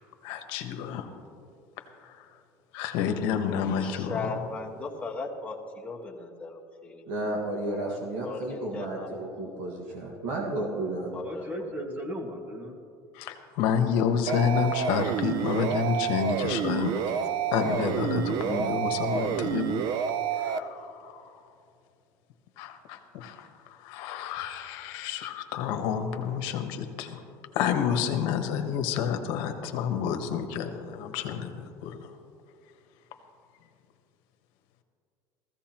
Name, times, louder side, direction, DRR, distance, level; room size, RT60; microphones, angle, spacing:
voice 1, 0.2-1.1 2.7-4.2 13.2-17.1 17.5-19.8 20.4-21.3 22.6-23.5 23.8-27.2 27.5-31.5 31.8-32.0, left 7 dB, 75° left, 6 dB, 1.2 m, -29 dB
voice 2, 3.7-7.3 7.9-9.1 11.1-11.5, left 3 dB, 15° left, -1 dB, 1.5 m, -38 dB
voice 3, 7.1-11.1, right 1 dB, 80° right, -1 dB, 1.8 m, -32 dB
voice 4, 11.1-12.8 18.0-18.7, equal, 20° right, 2 dB, 1.8 m, -37 dB
sound 1, 14.3-20.6, right 8 dB, 60° right, 0.6 m, -29 dB
15.5 x 15.0 x 3.0 m, 2.5 s
cardioid pair, 125°, 8 cm